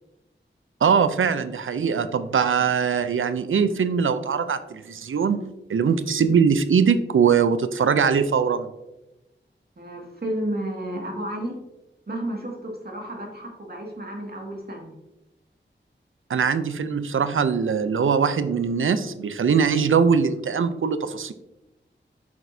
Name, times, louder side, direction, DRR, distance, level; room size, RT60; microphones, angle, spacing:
voice 1, 0.8-5.4 5.7-8.7 16.3-21.3, right 6 dB, 85° right, 12 dB, 0.5 m, -21 dB
voice 2, 9.8-11.5 12.1-15.0, right 1 dB, 55° right, 0 dB, 2.0 m, -32 dB
8.7 x 6.1 x 2.7 m, 0.97 s
cardioid pair, 45°, 20 cm